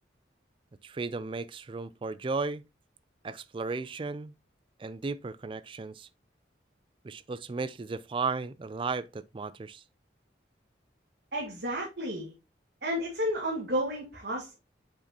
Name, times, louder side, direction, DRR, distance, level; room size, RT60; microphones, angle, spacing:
voice 1, 0.8-2.6 3.2-4.3 4.8-6.1 7.0-9.8, right 4 dB, 30° right, 0.3 m, -35 dB
voice 2, 11.3-12.3 12.8-14.5, equal, 60° right, 1.8 m, -32 dB
6.9 x 5.1 x 2.8 m
head